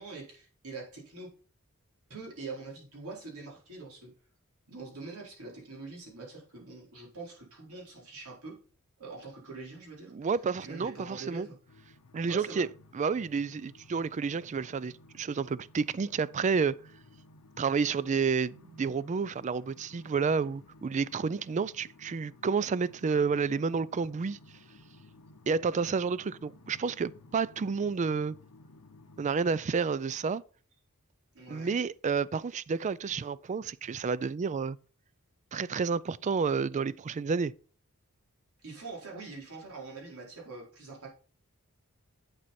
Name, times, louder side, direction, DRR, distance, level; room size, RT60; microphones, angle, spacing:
voice 1, 0.0-1.3 2.1-4.1 4.7-8.6 9.0-10.3 10.6-11.6 12.3-12.7 31.3-31.7 38.6-41.1, right 3 dB, 75° right, 4.4 m, -44 dB
voice 2, 10.1-11.5 12.1-12.7 12.9-16.8 17.6-24.4 25.5-28.4 29.2-30.4 31.5-34.8 35.5-37.5, right 5 dB, 30° right, 0.3 m, -30 dB
sound 1, 11.7-29.3, left 2 dB, 70° left, 0.8 m, -56 dB
8.1 x 7.5 x 4.2 m
head